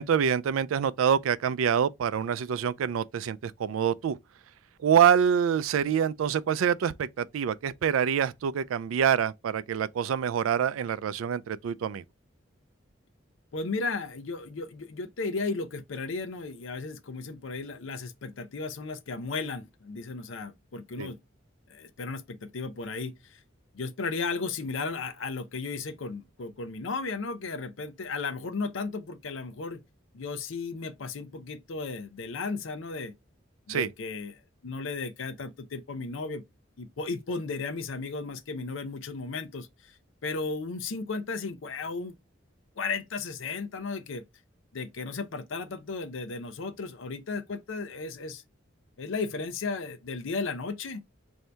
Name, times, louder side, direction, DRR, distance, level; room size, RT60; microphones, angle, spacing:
voice 1, 0.0-4.2 4.8-12.0 21.0-21.1 33.7-33.9, right 8 dB, 85° right, 0.3 m, -26 dB
voice 2, 13.5-21.2 21.7-23.4 23.7-29.8 30.1-33.1 33.7-36.4 36.8-39.9 40.2-42.2 42.8-44.3 44.7-48.4 49.0-51.0, left 4 dB, 75° left, 0.5 m, -35 dB
3.3 x 2.7 x 4.3 m
head